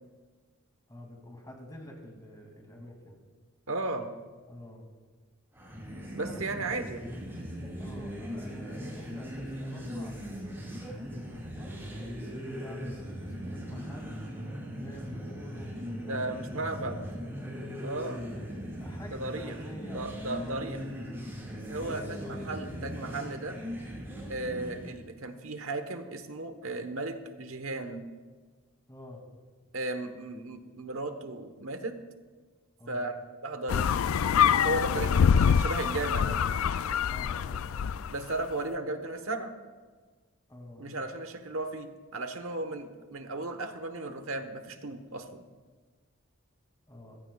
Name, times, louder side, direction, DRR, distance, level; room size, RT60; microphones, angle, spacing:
voice 1, 0.9-3.2 4.5-4.9 6.2-6.8 7.8-11.5 12.2-14.2 14.7-17.1 18.3-18.5 18.8-20.6 21.7-22.9 28.9-29.2 32.8-33.1 37.1-37.8 40.5-40.9 46.9-47.2, left 1 dB, 20° left, 1 dB, 2.5 m, -48 dB
voice 2, 3.7-4.1 6.1-7.0 16.1-17.0 17.8-18.2 19.1-19.5 19.9-20.8 21.7-23.6 24.3-28.0 29.7-31.9 32.9-33.1 33.4-34.0 34.6-36.4 38.1-39.5 40.8-45.4, right 2 dB, 80° right, 8 dB, 1.2 m, -35 dB
sound 1, 5.5-25.0, equal, 10° right, 5.1 m, -39 dB
sound 2, 33.7-38.2, left 7 dB, 80° left, 0.4 m, -25 dB
20.5 x 15.0 x 2.4 m, 1.4 s
head